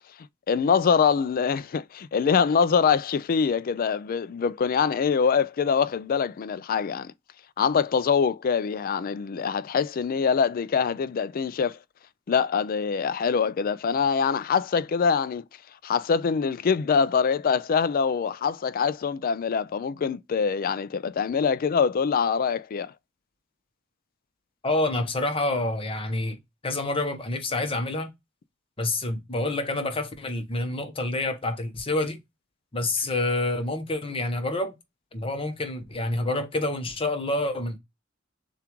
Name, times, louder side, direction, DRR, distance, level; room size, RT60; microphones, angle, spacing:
voice 1, 0.5-7.1 7.6-11.8 12.3-15.4 15.8-22.9, left 6 dB, 45° left, 0.3 m, -24 dB
voice 2, 24.6-26.4 26.6-28.1 28.8-32.2 32.7-34.7 35.1-37.8, left 2 dB, 30° left, 1.0 m, -28 dB
6.7 x 2.5 x 3.0 m
head